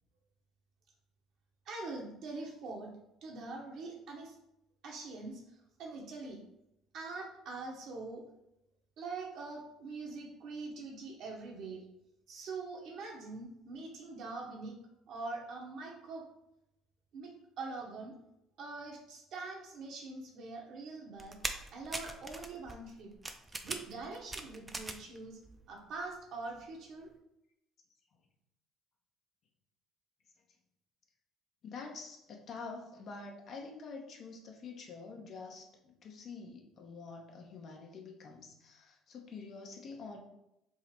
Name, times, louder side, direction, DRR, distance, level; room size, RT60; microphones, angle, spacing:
voice 1, 1.6-3.0 3.2-4.4 4.8-5.4 5.8-6.4 6.9-8.2 9.0-11.8 12.3-14.8 15.1-16.2 17.1-17.3 17.6-18.2 18.6-21.4 21.7-23.1 23.6-25.4 25.7-27.1, right 3 dB, 65° right, 0 dB, 1.0 m, -43 dB
sound 1, 21.2-25.2 25.4-26.2 26.6-26.7, right 2 dB, 20° right, 0.5 m, -41 dB
voice 2, 31.6-40.2, left 4 dB, 55° left, 1 dB, 0.8 m, -47 dB
3.6 x 2.1 x 4.4 m, 0.85 s
supercardioid pair, 75°, 0 cm